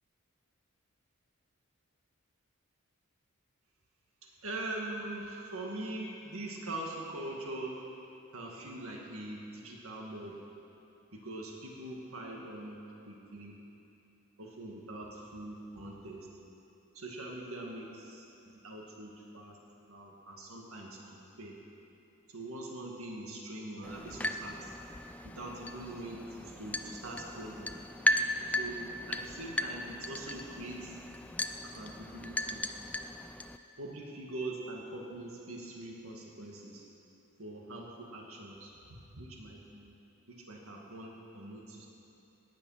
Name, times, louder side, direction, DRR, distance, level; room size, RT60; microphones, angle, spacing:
voice 1, 4.2-7.7 8.3-10.4 11.1-12.8 13.1-13.6 14.4-16.3 16.9-18.3 18.6-21.6 22.3-24.8 25.2-27.7 28.6-31.0 31.6-32.6 33.8-36.8 37.4-39.9 40.3-41.9, right 2 dB, 70° right, -1 dB, 2.0 m, -43 dB
sound 1, 23.8-33.6, left 1 dB, 5° left, 0.3 m, -36 dB
17.5 x 10.0 x 5.8 m, 2.9 s
head